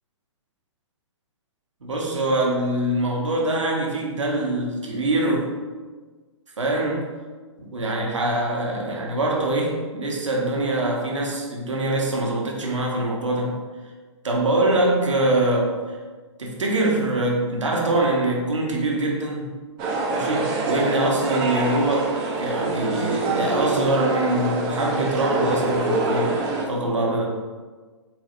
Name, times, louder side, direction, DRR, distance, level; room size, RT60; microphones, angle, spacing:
voice 1, 1.8-5.5 6.6-7.1 7.6-13.6 14.2-15.8 16.4-19.6 20.1-27.3, right 2 dB, 85° right, -1 dB, 1.0 m, -24 dB
sound 1, 19.8-26.6, right 2 dB, 30° right, 0.6 m, -25 dB
4.6 x 3.9 x 2.5 m, 1.4 s
hypercardioid pair, 125°, 15 cm